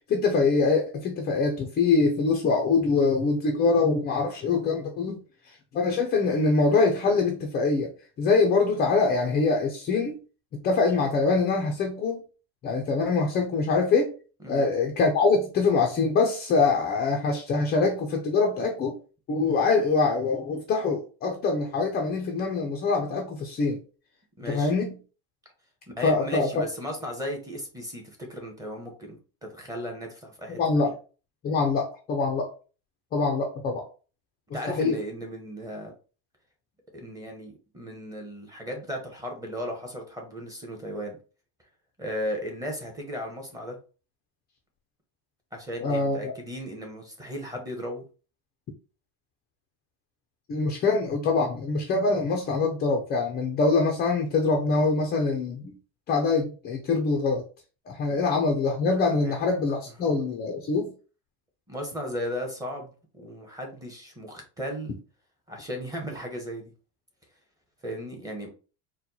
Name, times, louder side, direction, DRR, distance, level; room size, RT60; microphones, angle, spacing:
voice 1, 0.1-5.2 5.5-7.9 8.2-10.2 10.6-12.2 12.6-14.1 14.5-19.0 19.3-23.8 24.5-25.0 26.0-26.5 30.5-30.9 31.4-32.5 33.1-33.9 34.7-35.0 45.8-46.3 50.5-55.7 56.1-57.4 57.9-60.9, left 4 dB, 20° left, 2 dB, 0.4 m, -24 dB
voice 2, 24.4-24.7 25.9-30.9 34.5-35.9 36.9-41.2 42.0-43.8 45.5-48.0 58.1-58.2 59.2-59.4 61.7-65.0 65.5-66.7 67.8-68.5, equal, 5° right, 0 dB, 0.8 m, -36 dB
4.4 x 2.2 x 3.9 m, 0.36 s
supercardioid pair, 150°, 49 cm